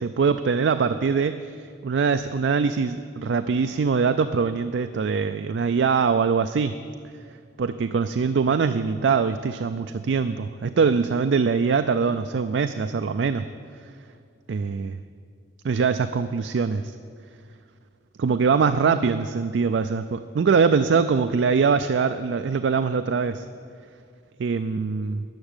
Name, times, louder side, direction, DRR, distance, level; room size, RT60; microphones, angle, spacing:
voice 1, 0.0-6.8 7.6-13.4 14.5-15.0 15.6-16.9 18.2-23.4 24.4-25.2, right 5 dB, 70° right, 10 dB, 0.4 m, -23 dB
11.5 x 7.1 x 8.9 m, 2.2 s
head